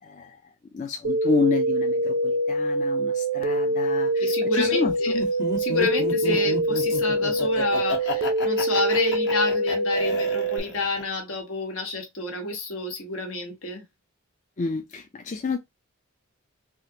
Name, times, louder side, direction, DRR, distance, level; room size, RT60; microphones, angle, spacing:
voice 1, 0.0-4.9 6.3-6.4 14.6-15.6, left 4 dB, 35° left, 0.4 m, -29 dB
sound 1, 1.0-10.6, right 1 dB, 70° right, 0.4 m, -25 dB
voice 2, 4.2-5.2 5.6-13.8, left 3 dB, 75° left, 1.3 m, -29 dB
Laughter, 5.1-11.0, left 4 dB, 55° left, 1.2 m, -31 dB
3.5 x 2.4 x 2.8 m
head